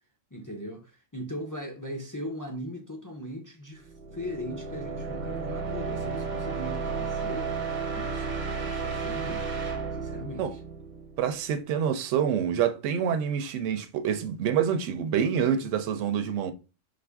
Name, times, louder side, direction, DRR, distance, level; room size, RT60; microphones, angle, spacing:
voice 1, 0.3-7.5 7.9-9.5 9.9-10.6 15.6-15.8, equal, 30° left, 0.3 m, -39 dB
sound 1, 3.8-11.5, right 5 dB, 45° right, 0.7 m, -33 dB
voice 2, 11.2-16.5, right 8 dB, 75° right, 0.9 m, -27 dB
5.2 x 2.5 x 3.4 m
omnidirectional pair, 1.3 m